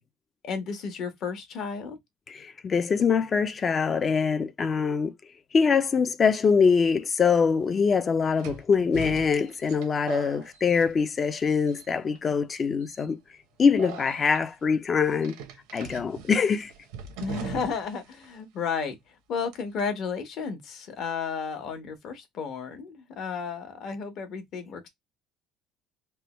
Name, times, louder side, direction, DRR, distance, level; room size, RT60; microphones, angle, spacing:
voice 1, 0.4-2.0 17.2-24.9, left 5 dB, 55° left, 1.0 m, -33 dB
voice 2, 2.3-5.1 5.5-13.2 13.6-15.3 15.7-16.7, left 5 dB, 30° left, 0.4 m, -24 dB
sound 1, 7.0-7.1 8.4-11.4 11.7-12.2 12.8-13.1 13.8-14.4 15.2-18.0 18.2-18.3 19.5-19.8, right 6 dB, 90° right, 0.7 m, -41 dB
3.3 x 2.2 x 2.9 m
cardioid pair, 125°, 0 cm